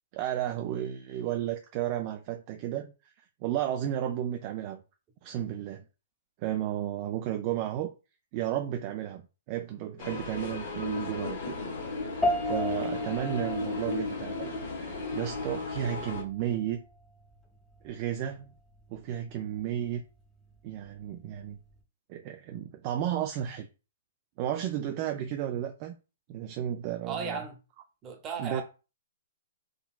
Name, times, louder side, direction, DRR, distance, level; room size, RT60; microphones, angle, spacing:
voice 1, 0.1-2.9 3.4-4.8 5.2-5.8 6.4-7.9 8.3-9.2 9.5-16.8 17.8-18.5 18.9-20.0 20.6-21.6 22.1-23.7 24.4-26.0 26.3-27.4 28.4-28.6, right 11 dB, 40° right, 0.3 m, -33 dB
sound 1, 10.0-16.2, left 4 dB, 60° left, 0.9 m, -35 dB
sound 2, 12.2-21.8, left 1 dB, 10° left, 0.7 m, -38 dB
voice 2, 27.1-27.6 28.0-28.6, right 5 dB, 25° right, 0.8 m, -35 dB
3.7 x 2.3 x 2.4 m
hypercardioid pair, 130°, 0 cm